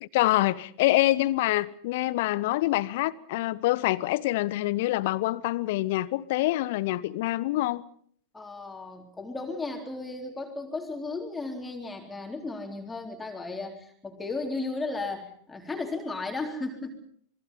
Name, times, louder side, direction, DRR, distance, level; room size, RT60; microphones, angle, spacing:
voice 1, 0.0-7.8, left 17 dB, 50° left, 1.2 m, -26 dB
voice 2, 8.3-17.0, left 3 dB, 10° left, 3.8 m, -35 dB
28.0 x 22.5 x 5.6 m
figure-of-eight pair, 90°, 0 cm